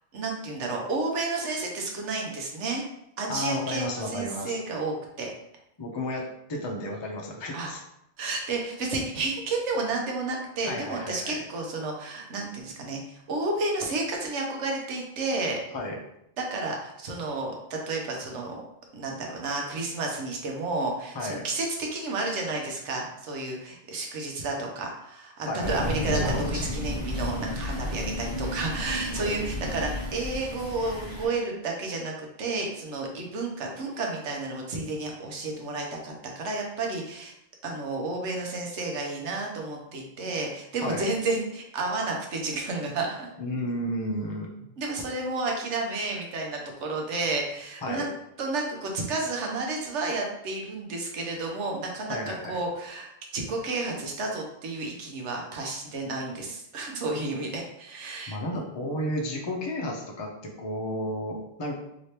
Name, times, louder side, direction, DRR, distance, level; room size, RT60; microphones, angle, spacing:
voice 1, 0.1-2.8 3.2-5.3 7.5-7.7 8.2-15.6 16.4-18.6 18.9-37.3 37.6-43.3 44.8-48.1 48.4-58.6, right 3 dB, 85° right, 1 dB, 1.1 m, -31 dB
voice 2, 3.3-4.6 5.8-7.8 10.6-11.4 15.7-16.0 21.1-21.4 25.5-25.9 29.1-29.4 40.8-41.1 43.4-44.5 47.8-48.1 52.1-52.6 58.3-61.7, left 1 dB, 35° left, 0 dB, 0.4 m, -32 dB
Crow, 25.6-31.3, left 1 dB, 50° right, 1.2 m, -32 dB
3.2 x 3.0 x 2.8 m, 0.79 s
omnidirectional pair, 1.2 m